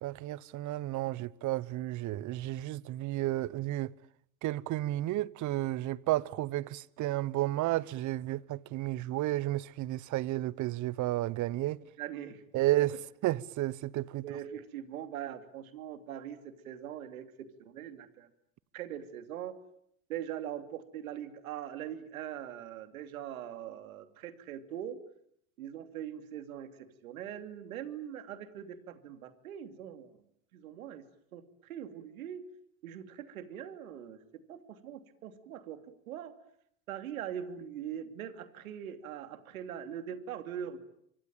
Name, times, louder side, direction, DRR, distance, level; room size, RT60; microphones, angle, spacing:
voice 1, 0.0-3.9 4.4-11.8 12.5-13.0 13.2-14.2, right 16 dB, 45° right, 1.1 m, -32 dB
voice 2, 12.0-12.4 12.8-12.9 14.1-18.3 18.7-19.6 20.1-25.0 25.6-30.1 30.5-31.0 31.3-32.4 32.8-34.2 34.5-36.3 36.9-40.8, right 10 dB, 80° right, 2.9 m, -42 dB
26.0 x 24.5 x 9.0 m
hypercardioid pair, 90°, 42 cm